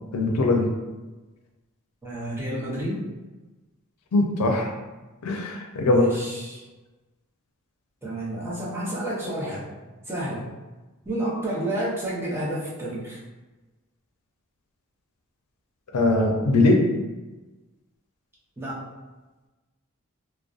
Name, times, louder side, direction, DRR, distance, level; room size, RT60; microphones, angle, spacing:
voice 1, 0.1-0.7 4.1-4.7 5.2-6.0 15.9-16.8, left 2 dB, 90° left, 2 dB, 0.4 m, -21 dB
voice 2, 2.0-3.0 5.8-6.6 8.0-9.7 10.1-10.5 11.0-13.2 18.6-18.8, right 1 dB, 10° right, -7 dB, 0.6 m, -30 dB
2.5 x 2.0 x 2.4 m, 1.2 s
head